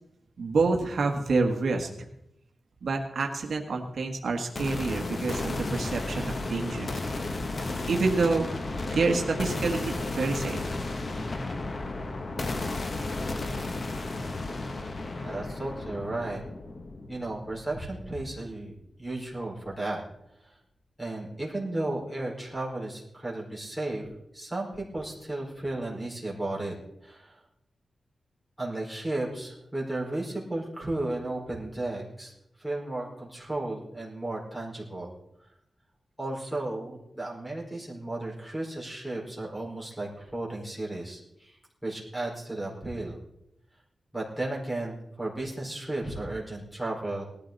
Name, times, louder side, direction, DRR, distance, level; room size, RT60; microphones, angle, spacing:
voice 1, 0.4-1.9 2.8-7.0 7.9-8.5 8.8-10.7 11.2-11.3, right 3 dB, 60° right, 2 dB, 1.5 m, -28 dB
sound 1, 4.6-18.5, left 2 dB, 40° left, 1.1 m, -33 dB
voice 2, 15.2-16.4 17.1-18.7 19.0-20.0 20.4-20.6 21.0-24.1 24.3-26.7 27.0-27.4 28.6-35.1 36.2-43.2 44.1-47.2, right 2 dB, 5° left, -3 dB, 4.7 m, -34 dB
19.0 x 13.5 x 4.1 m, 0.80 s
wide cardioid pair, 175°, 0 cm